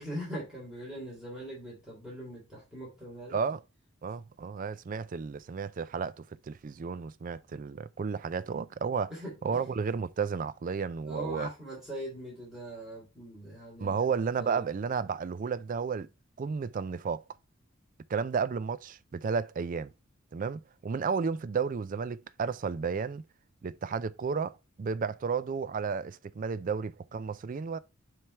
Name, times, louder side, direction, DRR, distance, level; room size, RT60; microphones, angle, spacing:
voice 1, 0.0-3.4 9.1-9.6 11.1-14.1 14.4-14.6, equal, 5° right, 3.1 m, -41 dB
voice 2, 3.3-3.6 4.0-9.1 9.4-11.5 13.8-16.1 16.4-17.2 18.1-19.9 20.3-23.2 23.6-27.8, right 5 dB, 40° right, 0.3 m, -32 dB
7.4 x 3.3 x 4.5 m
head